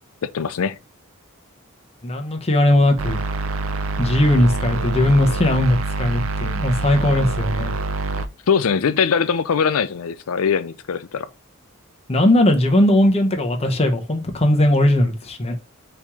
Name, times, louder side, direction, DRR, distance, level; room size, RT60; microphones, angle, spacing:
voice 1, 0.2-0.8 8.5-11.3, left 6 dB, 90° left, 0.5 m, -21 dB
voice 2, 2.0-3.2 4.0-7.7 12.1-15.5, left 1 dB, 30° left, 0.8 m, -18 dB
sound 1, 3.0-8.3, right 3 dB, 75° right, 0.5 m, -26 dB
4.4 x 3.0 x 3.5 m
head